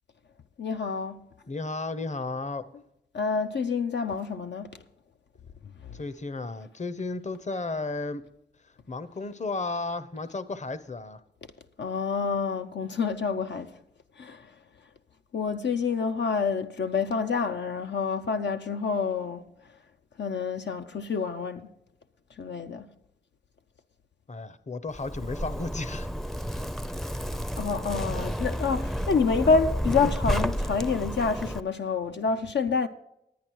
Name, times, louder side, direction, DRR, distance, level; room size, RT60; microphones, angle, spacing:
voice 1, 0.6-1.2 3.1-4.8 5.8-6.0 11.8-13.8 14.2-14.5 15.3-19.4 20.2-21.7 22.4-22.9 27.6-32.9, left 5 dB, 80° left, 0.5 m, -28 dB
voice 2, 1.5-2.7 5.9-8.2 8.9-11.2 24.3-26.1, left 3 dB, 40° left, 0.7 m, -33 dB
Zipper (clothing), 24.9-31.6, equal, ahead, 0.4 m, -31 dB
10.5 x 9.9 x 4.6 m
wide cardioid pair, 65°, 18 cm